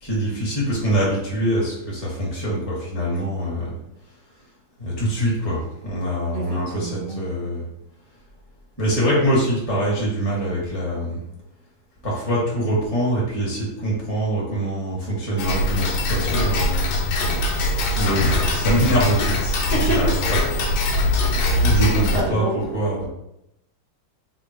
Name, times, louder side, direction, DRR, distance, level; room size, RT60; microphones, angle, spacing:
voice 1, 0.0-3.8 4.8-7.7 8.8-11.2 12.0-16.8 17.9-23.0, right 1 dB, 15° left, -6 dB, 0.8 m, -24 dB
voice 2, 6.3-7.2 19.7-20.0 22.1-22.6, right 1 dB, 60° right, -5 dB, 0.8 m, -27 dB
Tick-tock, 15.4-22.2, left 1 dB, 90° left, 1.5 m, -22 dB
3.7 x 2.1 x 4.2 m, 0.84 s
omnidirectional pair, 2.3 m